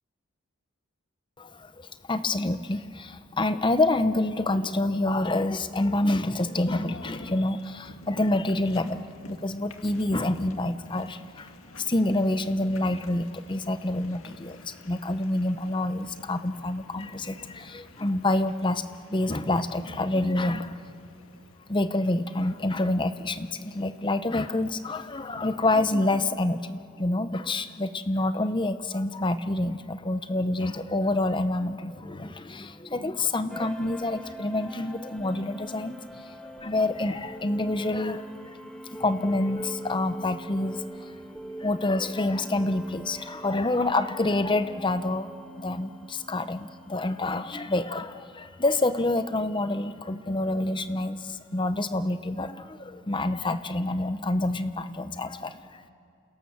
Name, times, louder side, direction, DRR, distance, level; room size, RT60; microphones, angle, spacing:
voice 1, 1.4-18.8 19.1-20.9 21.7-38.6 38.9-41.1 41.6-45.3 45.6-55.9, left 2 dB, 20° left, 11 dB, 0.8 m, -27 dB
sound 1, 6.7-25.8, left 2 dB, 75° left, 1.9 m, -49 dB
sound 2, 33.5-47.6, right 1 dB, 5° left, 1.3 m, -43 dB
28.5 x 27.5 x 7.2 m, 2.6 s
head